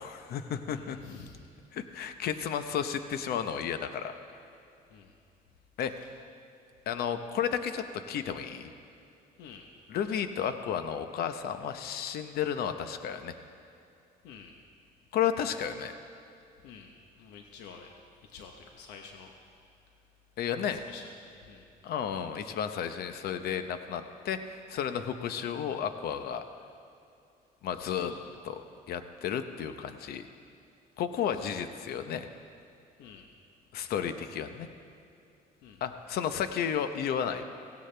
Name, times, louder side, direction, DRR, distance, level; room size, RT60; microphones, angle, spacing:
voice 1, 0.0-1.0 1.7-4.1 5.8-5.9 6.9-8.7 9.9-13.3 15.1-16.0 20.4-20.8 21.8-26.4 27.6-28.1 28.4-28.6 28.9-30.3 31.0-32.3 33.7-34.7 35.8-37.5, left 8 dB, 65° left, 9 dB, 0.9 m, -32 dB
voice 2, 0.7-1.4 4.9-5.2 6.0-6.1 9.4-9.7 14.2-14.6 16.6-17.9 18.2-19.3 20.7-21.7 27.7-28.3 31.3-31.9 33.0-33.3 35.6-35.8, left 6 dB, 90° left, 3 dB, 1.0 m, -49 dB
16.5 x 16.5 x 3.4 m, 2.6 s
cardioid pair, 110°, 17 cm